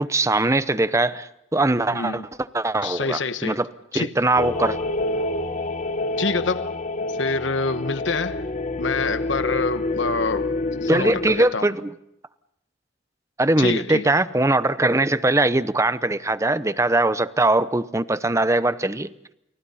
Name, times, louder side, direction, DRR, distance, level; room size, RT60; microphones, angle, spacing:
voice 1, 0.0-2.2 2.5-3.7 3.9-4.8 10.9-11.9 13.4-19.1, right 2 dB, 15° right, 0.8 m, -21 dB
voice 2, 1.9-2.3 2.8-3.6 3.9-4.1 6.2-6.8 7.1-8.5 8.8-10.5 10.8-11.7 13.6-14.1, left 4 dB, 80° left, 1.1 m, -26 dB
sound 1, 4.4-11.4, left 2 dB, 40° left, 1.2 m, -27 dB
30.0 x 29.5 x 4.2 m
head